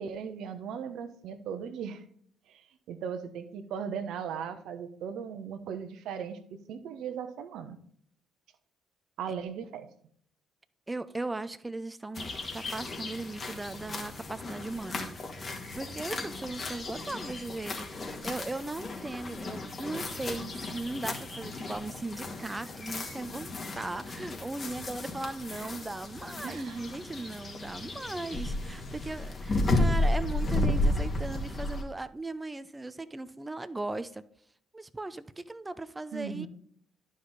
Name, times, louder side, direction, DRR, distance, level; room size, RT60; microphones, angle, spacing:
voice 1, 0.0-2.0 2.5-7.8 9.2-9.9 25.5-25.7 26.4-26.8 36.1-36.5, right 7 dB, 70° right, 0.9 m, -38 dB
voice 2, 10.9-15.1 15.4-34.2 34.7-36.5, right 2 dB, 20° right, 0.6 m, -38 dB
sound 1, 12.1-31.8, left 2 dB, 45° left, 2.1 m, -33 dB
11.5 x 5.2 x 4.0 m
hypercardioid pair, 50°, 0 cm